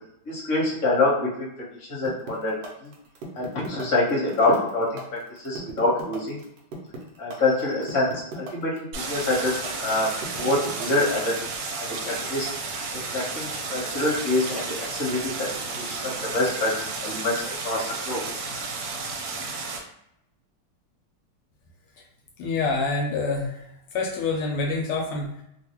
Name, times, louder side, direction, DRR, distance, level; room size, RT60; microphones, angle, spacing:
voice 1, 0.2-1.5 1.8-2.6 2.8-2.9 3.3-6.4 7.2-8.7 9.1-10.1 10.4-11.3 11.8-12.5 13.1-17.3 17.6-18.2, left 2 dB, 45° left, -5 dB, 1.4 m, -25 dB
sound 1, 2.0-11.3, right 2 dB, 70° right, 1.3 m, -38 dB
Stream, 8.9-19.8, right 4 dB, 85° right, 1.5 m, -32 dB
voice 2, 22.4-23.6 23.9-25.4, left 3 dB, 80° left, -1 dB, 1.4 m, -26 dB
3.5 x 2.3 x 2.9 m, 0.77 s
omnidirectional pair, 2.4 m